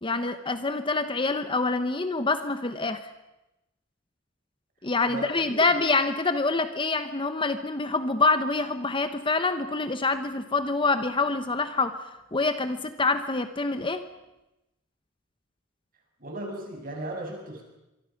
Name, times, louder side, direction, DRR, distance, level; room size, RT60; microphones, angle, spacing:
voice 1, 0.0-3.0 4.8-12.0 12.3-14.0, left 3 dB, 25° left, 10 dB, 1.0 m, -26 dB
voice 2, 5.1-5.5 16.2-17.6, right 1 dB, 45° right, 1 dB, 6.9 m, -36 dB
25.5 x 23.5 x 5.9 m, 0.95 s
head